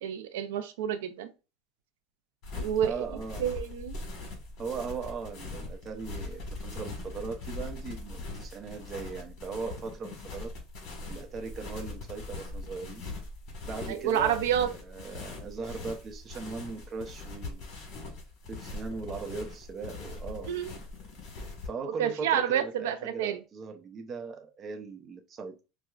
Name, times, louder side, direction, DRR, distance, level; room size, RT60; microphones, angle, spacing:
voice 1, 0.0-1.3 2.6-3.0 3.4-3.9 13.9-14.7 20.5-20.7 22.0-23.4, right 9 dB, 85° right, 0.3 m, -29 dB
sound 1, 2.4-21.7, left 3 dB, 50° left, 1.4 m, -41 dB
voice 2, 2.8-3.5 4.6-10.5 11.1-13.0 13.6-17.6 18.5-20.5 21.6-25.6, right 4 dB, 30° right, 0.5 m, -39 dB
4.4 x 2.0 x 2.3 m
supercardioid pair, 130°, 0 cm